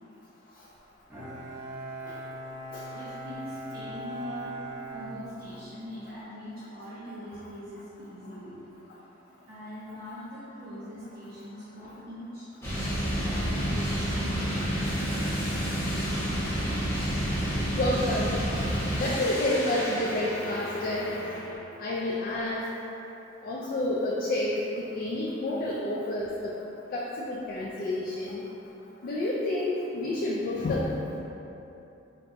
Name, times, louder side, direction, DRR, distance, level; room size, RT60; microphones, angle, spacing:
Bowed string instrument, 1.1-6.0, right 1 dB, 15° right, 0.7 m, -40 dB
voice 1, 2.9-4.5 4.9-8.6 9.2-12.5 13.1-14.2 14.8-15.4, equal, 50° right, -11 dB, 0.6 m, -42 dB
sound 1, 12.6-21.6, equal, 15° left, 0.9 m, -30 dB
voice 2, 17.8-18.3 18.9-21.1 21.8-22.7 23.4-26.5 26.9-28.4 29.0-30.9, left 1 dB, 45° left, -5 dB, 0.3 m, -29 dB
5.2 x 2.2 x 2.6 m, 3.0 s
head